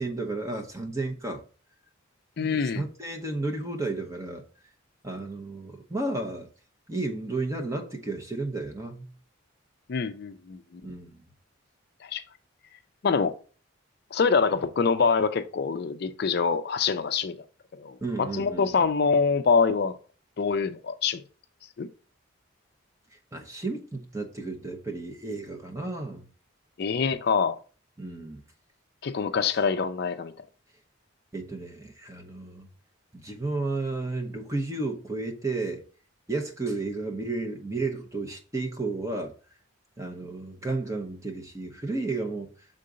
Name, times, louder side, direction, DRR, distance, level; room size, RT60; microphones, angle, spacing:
voice 1, 0.0-1.4 2.4-4.4 5.0-6.5 6.9-9.1 10.8-11.3 18.0-18.8 23.3-26.3 28.0-28.4 31.3-32.7 33.1-35.8 36.3-39.3 40.0-42.5, right 2 dB, 15° right, 0.8 m, -32 dB
voice 2, 2.4-2.8 9.9-10.8 12.0-12.2 13.0-13.3 14.1-17.3 17.8-20.0 20.4-21.2 21.8-21.9 26.8-27.6 29.0-30.3, left 5 dB, 50° left, 0.4 m, -25 dB
6.5 x 3.8 x 3.8 m
head